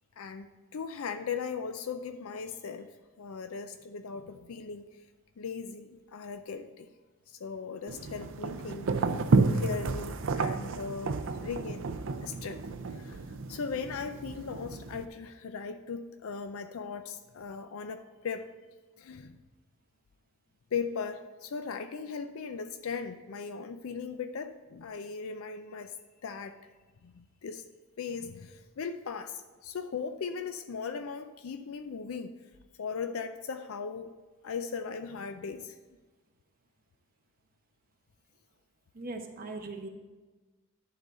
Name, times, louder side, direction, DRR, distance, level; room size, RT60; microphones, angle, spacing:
voice 1, 0.2-5.0 5.4-6.9 7.3-9.1 9.5-11.9 12.2-12.6 12.9-13.2 13.5-18.5 19.0-19.4 20.7-26.0 26.2-26.6 27.0-27.7 28.0-32.4 32.8-34.1 34.4-35.8, left 5 dB, 65° left, 8 dB, 0.4 m, -38 dB
sound 1, 7.9-15.0, right 3 dB, 60° right, 0.5 m, -31 dB
voice 2, 38.9-39.9, right 2 dB, 40° right, 2 dB, 1.0 m, -39 dB
11.0 x 3.9 x 6.7 m, 1.3 s
head